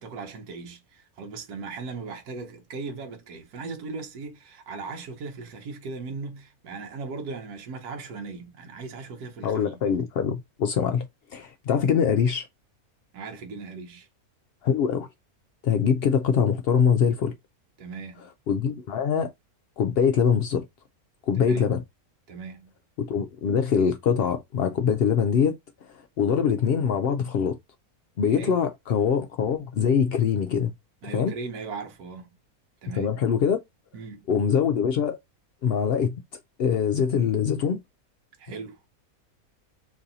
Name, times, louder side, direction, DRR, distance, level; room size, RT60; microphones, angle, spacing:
voice 1, 0.0-9.8 13.1-14.1 17.8-18.3 21.4-21.7 22.3-22.7 28.3-28.6 31.0-32.3 32.8-33.1 33.9-34.2 38.4-38.8, right 4 dB, 85° right, 1.3 m, -38 dB
voice 2, 9.4-11.1 11.3-12.5 14.6-15.1 15.6-17.3 18.5-19.3 19.8-20.6 21.3-21.8 23.0-25.5 26.2-27.6 28.2-30.7 31.1-31.3 32.9-33.6 34.3-35.2 35.6-36.1 36.6-37.8, left 7 dB, 90° left, 0.5 m, -23 dB
3.1 x 2.7 x 3.8 m
omnidirectional pair, 1.6 m